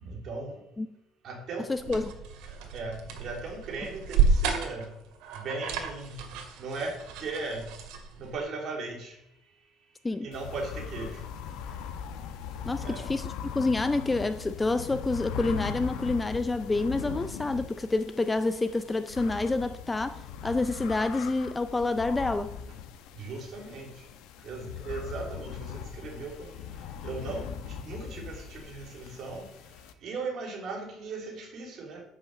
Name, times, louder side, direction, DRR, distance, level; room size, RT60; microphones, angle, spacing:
voice 1, 0.0-0.6 1.2-2.0 2.7-4.9 5.3-6.2 6.6-7.6 8.2-9.2 10.2-11.2 12.8-13.1 23.1-24.0 24.4-26.5 27.0-29.4 30.0-32.0, right 3 dB, 40° right, 1 dB, 3.1 m, -37 dB
voice 2, 1.7-2.1 10.0-10.3 12.7-22.5, left 3 dB, 10° left, 9 dB, 0.4 m, -28 dB
sound 1, 1.7-8.4, right 5 dB, 85° right, 2.2 m, -31 dB
sound 2, 10.3-29.9, left 7 dB, 70° left, 1.1 m, -40 dB
10.5 x 6.3 x 7.8 m, 0.81 s
cardioid pair, 170°, 0 cm